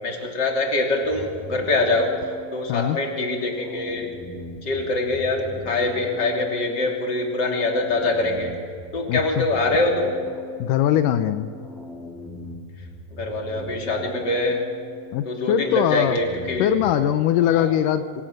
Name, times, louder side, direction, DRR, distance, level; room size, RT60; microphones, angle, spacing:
voice 1, 0.0-2.1 2.5-4.1 4.6-8.5 8.9-10.1 13.1-14.6 15.3-16.7 17.5-17.7, left 2 dB, 35° left, 0 dB, 3.4 m, -24 dB
sound 1, 1.0-17.1, equal, ahead, 1.8 m, -40 dB
voice 2, 2.7-3.0 9.1-9.5 10.6-11.5 15.1-16.2 16.6-18.2, left 10 dB, 85° left, 10 dB, 2.4 m, -21 dB
25.0 x 17.5 x 6.6 m, 2.4 s
omnidirectional pair, 3.7 m